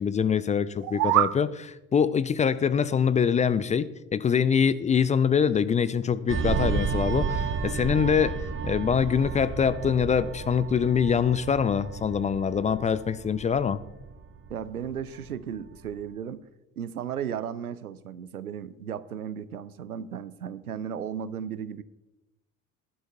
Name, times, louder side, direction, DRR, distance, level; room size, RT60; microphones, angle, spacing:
voice 1, 0.0-8.4 8.6-13.8, left 7 dB, 15° left, 15 dB, 0.4 m, -24 dB
sound 1, 0.7-1.4, right 16 dB, 45° right, 0.6 m, -24 dB
sound 2, 6.3-15.3 15.7-15.9, right 5 dB, 30° right, 1.0 m, -32 dB
voice 2, 14.5-16.4 16.8-21.8, right 8 dB, 85° right, 17 dB, 0.6 m, -35 dB
19.0 x 11.5 x 2.6 m, 1.0 s
figure-of-eight pair, 55°, 43 cm